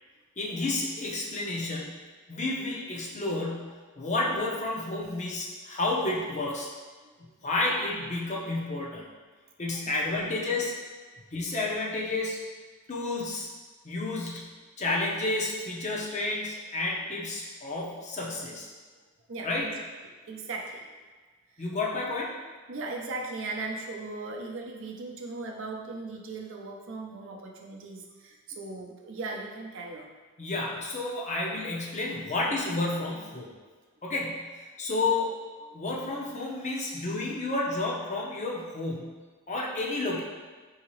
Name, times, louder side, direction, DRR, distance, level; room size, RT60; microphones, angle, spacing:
voice 1, 0.4-2.0 2.3-6.7 7.4-9.0 9.6-10.7 11.3-12.4 12.9-13.5 13.8-14.5 14.8-18.7 19.4-19.6 21.6-22.3 30.4-33.5 34.0-34.5 34.8-35.3 35.7-39.2 39.5-40.2, left 2 dB, 35° left, -3 dB, 0.6 m, -31 dB
voice 2, 19.3-19.7 20.2-20.9 21.5-21.7 21.9-22.0 22.7-30.1 35.7-35.8, right 3 dB, 60° right, 0 dB, 0.5 m, -38 dB
4.7 x 2.8 x 3.1 m, 1.4 s
head